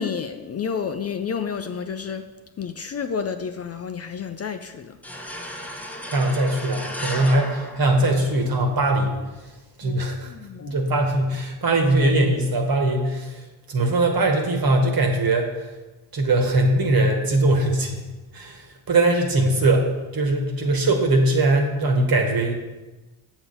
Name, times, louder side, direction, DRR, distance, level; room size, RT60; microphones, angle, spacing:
voice 1, 0.0-2.3 2.6-5.0 9.8-10.0 10.2-10.8, left 6 dB, 30° left, 8 dB, 0.5 m, -30 dB
sound 1, 5.0-8.6, left 1 dB, 5° left, 1.0 m, -35 dB
voice 2, 6.1-9.2 9.8-10.3 10.7-13.4 13.7-15.6 16.1-18.0 18.3-22.5, right 2 dB, 45° right, 3 dB, 1.7 m, -21 dB
7.0 x 6.9 x 4.2 m, 1.1 s
supercardioid pair, 65°, 48 cm